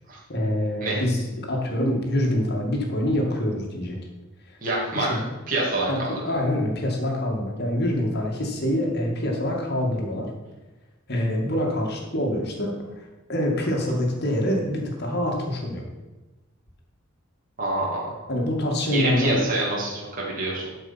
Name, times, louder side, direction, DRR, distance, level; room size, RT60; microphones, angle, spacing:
voice 1, 0.3-4.0 4.5-4.6 4.9-5.3 5.9-6.0 6.2-10.3 11.1-15.8 18.3-19.4, left 1 dB, 50° left, 0 dB, 2.1 m, -25 dB
voice 2, 4.6-5.1 5.5-6.1 17.6-18.1 18.9-20.7, right 2 dB, 40° right, -5 dB, 2.6 m, -26 dB
12.0 x 5.3 x 5.8 m, 1.1 s
head